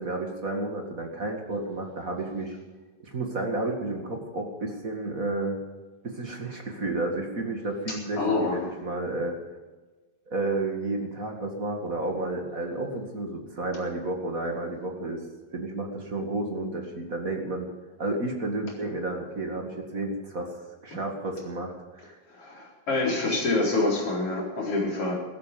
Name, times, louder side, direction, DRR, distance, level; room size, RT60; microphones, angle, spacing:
voice 1, 0.0-2.6 3.0-5.6 6.0-9.4 10.3-15.2 15.5-17.7 18.0-20.5 20.8-22.2, right 2 dB, 30° right, 2 dB, 1.9 m, -31 dB
voice 2, 8.2-8.6 20.9-21.0 22.3-25.1, left 2 dB, 40° left, -3 dB, 5.1 m, -26 dB
16.5 x 14.0 x 5.3 m, 1.2 s
omnidirectional pair, 4.1 m